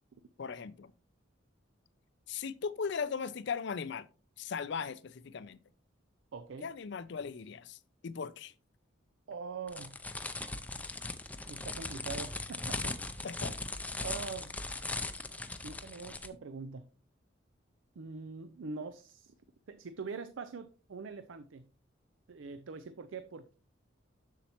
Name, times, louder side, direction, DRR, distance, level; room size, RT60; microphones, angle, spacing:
voice 1, 0.4-0.9 2.3-4.1 4.4-5.6 6.6-8.5 12.8-12.9 13.2-13.6, left 6 dB, 60° left, 0.4 m, -38 dB
voice 2, 6.3-6.7 9.3-10.0 11.5-13.0 14.0-14.5 15.6-16.9 18.0-19.3 19.7-21.7 22.3-23.5, right 4 dB, 75° right, 0.5 m, -43 dB
sound 1, 9.7-16.3, left 2 dB, 10° left, 0.4 m, -39 dB
7.2 x 6.9 x 2.9 m
head